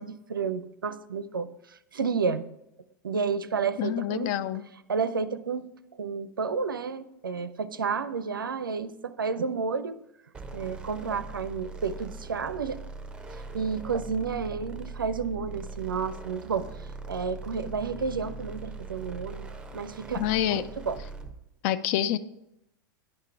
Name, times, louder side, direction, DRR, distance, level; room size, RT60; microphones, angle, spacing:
voice 1, 0.0-2.5 3.0-4.3 4.9-5.7 6.0-10.0 10.5-12.8 13.3-21.0, right 5 dB, 75° right, 13 dB, 0.4 m, -31 dB
voice 2, 3.8-4.6 20.2-20.6 21.6-22.2, left 11 dB, 45° left, 14 dB, 0.4 m, -27 dB
sound 1, 10.3-21.4, right 3 dB, 10° right, 0.8 m, -41 dB
10.5 x 3.7 x 4.6 m, 0.86 s
figure-of-eight pair, 90°, 11 cm